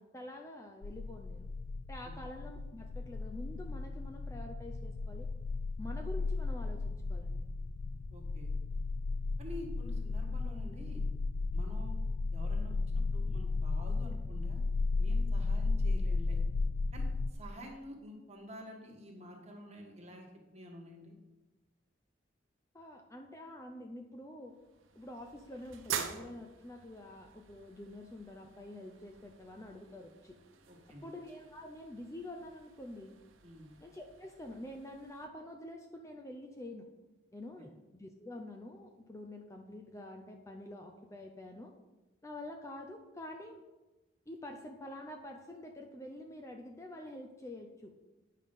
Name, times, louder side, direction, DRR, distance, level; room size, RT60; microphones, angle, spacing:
voice 1, 0.0-1.5 1.9-5.3 5.8-7.4 22.7-24.5 24.9-30.4 31.0-33.1 33.8-36.9 37.3-41.7 42.2-43.6 44.3-47.9, left 1 dB, 15° left, 3 dB, 0.6 m, -47 dB
sound 1, 0.8-17.3, left 3 dB, 65° left, 0.4 m, -34 dB
voice 2, 8.1-8.5 9.4-11.1 11.5-12.0 12.3-14.6 15.0-16.4 16.9-20.3 20.5-21.2 30.7-31.1 33.4-33.7 37.6-37.7, equal, 35° right, 0 dB, 1.6 m, -49 dB
sound 2, 24.5-35.3, right 7 dB, 85° right, 0.9 m, -47 dB
9.7 x 5.6 x 5.3 m, 1.1 s
head